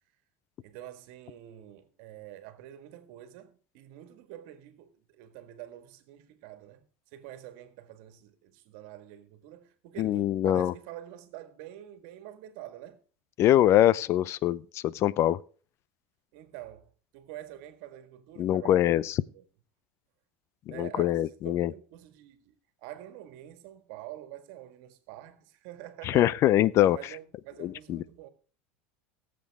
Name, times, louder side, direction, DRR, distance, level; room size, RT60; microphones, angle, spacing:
voice 1, 0.6-6.8 7.1-13.0 16.3-19.4 20.7-26.4 26.9-28.3, right 13 dB, 70° right, 1.7 m, -46 dB
voice 2, 10.0-10.7 13.4-15.4 18.4-19.2 20.7-21.7 26.0-27.0 27.6-28.0, left 13 dB, 45° left, 0.6 m, -24 dB
18.0 x 7.6 x 3.6 m
supercardioid pair, 105°, 6 cm